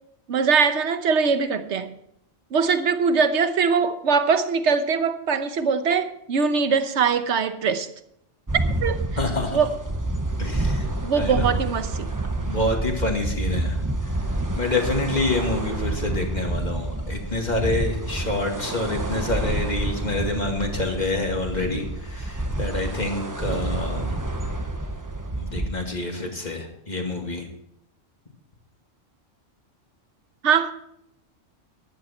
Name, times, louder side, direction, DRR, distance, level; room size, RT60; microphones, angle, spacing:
voice 1, 0.3-1.9 2.5-7.9 8.8-9.0 9.5-9.7 11.0-12.1 30.4-30.7, right 5 dB, 75° right, 1.2 m, -22 dB
sound 1, 8.5-25.7, right 2 dB, 15° right, 0.9 m, -28 dB
voice 2, 9.2-9.6 10.4-10.9 11.1-11.6 12.5-13.8 14.6-24.2 25.4-27.5, left 2 dB, 35° left, 2.4 m, -27 dB
14.5 x 11.0 x 4.4 m
omnidirectional pair, 1.2 m